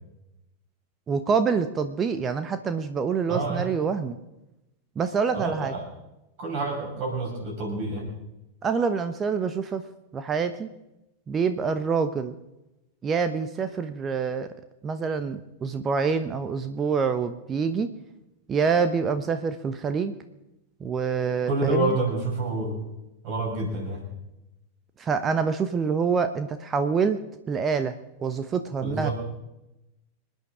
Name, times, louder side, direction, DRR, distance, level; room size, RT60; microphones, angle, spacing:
voice 1, 1.1-4.2 5.0-5.7 8.6-9.8 10.1-10.7 11.3-12.3 13.0-14.5 14.8-17.9 18.5-20.1 20.8-22.0 25.0-27.2 27.5-27.9 28.2-29.1, right 5 dB, 25° right, 10 dB, 0.9 m, -26 dB
voice 2, 3.3-3.7 5.3-5.8 6.4-8.1 21.5-22.8 23.2-24.0 28.8-29.1, right 2 dB, 45° right, 0 dB, 6.5 m, -28 dB
26.5 x 9.4 x 4.9 m, 0.93 s
figure-of-eight pair, 90°, 0 cm